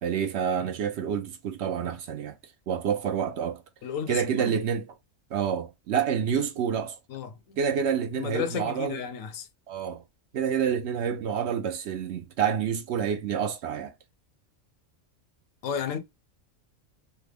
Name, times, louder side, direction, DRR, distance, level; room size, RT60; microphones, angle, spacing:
voice 1, 0.0-2.3 2.7-3.6 4.1-4.8 5.3-7.0 7.6-9.0 9.7-10.0 10.3-13.9, right 7 dB, 65° right, 0.8 m, -28 dB
voice 2, 3.8-4.6 7.1-7.6 8.1-9.5 15.6-16.0, left 8 dB, 90° left, 1.1 m, -33 dB
3.3 x 2.0 x 3.3 m
omnidirectional pair, 1.3 m